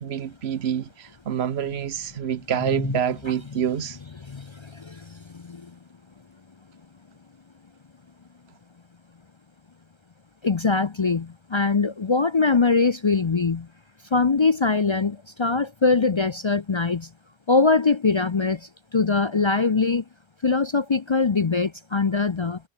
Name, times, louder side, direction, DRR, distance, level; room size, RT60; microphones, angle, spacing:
voice 1, 0.0-4.0, right 9 dB, 75° right, 1.1 m, -27 dB
voice 2, 4.3-5.7 10.4-13.7 14.1-17.1 17.5-20.0 20.4-22.6, left 4 dB, 35° left, 0.5 m, -22 dB
omnidirectional pair, 1.1 m